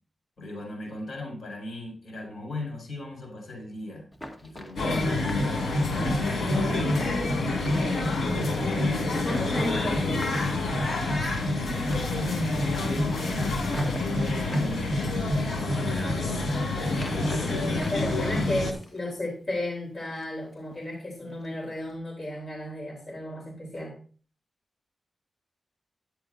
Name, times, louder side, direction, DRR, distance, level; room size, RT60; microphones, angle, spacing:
voice 1, 0.4-4.1 4.4-5.0 5.3-8.2 8.8-9.8 12.6-13.6 14.1-16.6 17.3-18.7, left 1 dB, 70° left, 0 dB, 4.9 m, -40 dB
Run, 4.1-11.5 11.8-12.3 12.6-14.7 15.3-15.9 16.1-16.4 16.9-18.0 18.3-19.1 19.5-19.7 20.1-20.4 20.7-20.9 21.3-21.5 21.8-22.0, left 1 dB, 20° left, 2.0 m, -44 dB
sound 1, 4.8-18.7, left 2 dB, 90° left, 2.0 m, -27 dB
voice 2, 9.2-10.2 17.9-24.0, left 1 dB, 40° left, -3 dB, 3.5 m, -33 dB
11.0 x 10.5 x 2.6 m, 0.40 s
cardioid pair, 80°, 0 cm